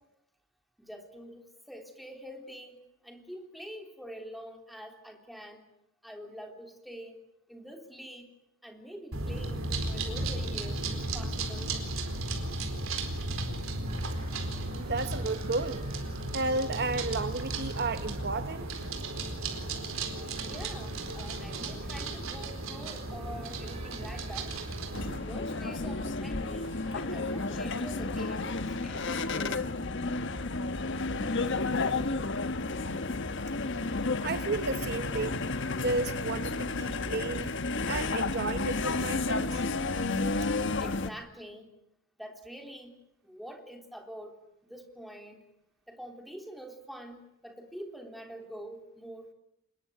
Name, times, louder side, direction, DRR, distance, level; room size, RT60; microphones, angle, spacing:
voice 1, 0.8-5.7 6.0-7.2 7.5-8.3 8.6-11.8 20.4-24.5 25.2-29.6 40.8-41.7 42.2-43.0 43.2-45.4 45.9-49.3, equal, ahead, 3.6 m, -46 dB
sound 1, 9.1-25.2, right 2 dB, 80° right, 4.3 m, -35 dB
sound 2, 13.9-28.9, right 3 dB, 30° right, 6.5 m, -55 dB
voice 2, 14.7-15.8 16.3-18.6 34.2-35.4 35.7-37.5 37.8-39.6, right 3 dB, 50° right, 1.0 m, -32 dB
sound 3, 24.9-41.1, left 3 dB, 60° left, 1.4 m, -31 dB
26.5 x 21.0 x 9.4 m
head